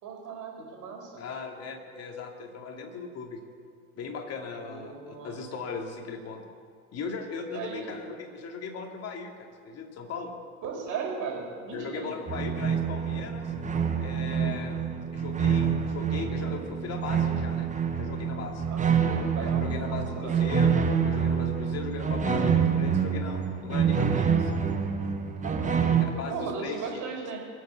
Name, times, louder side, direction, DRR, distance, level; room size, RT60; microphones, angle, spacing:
voice 1, 0.0-1.2 4.7-5.5 7.5-8.0 10.6-12.1 18.7-20.5 25.4-27.4, right 5 dB, 45° right, 0 dB, 4.8 m, -37 dB
voice 2, 1.2-3.4 4.0-6.4 6.9-10.3 11.7-13.5 14.0-14.8 15.1-18.6 19.4-24.5 25.8-26.9, left 4 dB, 35° left, 2 dB, 2.6 m, -38 dB
sound 1, 12.3-26.0, right 7 dB, 15° right, 1.5 m, -27 dB
22.5 x 7.9 x 7.2 m, 2.1 s
hypercardioid pair, 100°, 43 cm